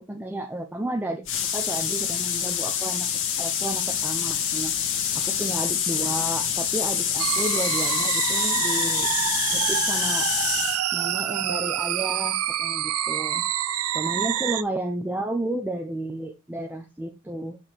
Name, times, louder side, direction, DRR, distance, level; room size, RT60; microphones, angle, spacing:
voice 1, 0.1-1.2 1.5-3.1 3.4-4.7 5.1-9.1 9.5-10.3 10.9-13.4 13.9-17.6, right 1 dB, 10° right, 0.6 m, -32 dB
sound 1, 1.2-10.8, left 8 dB, 60° left, 1.6 m, -26 dB
sound 2, 7.2-14.6, right 11 dB, 70° right, 0.5 m, -27 dB
7.0 x 4.2 x 4.4 m
head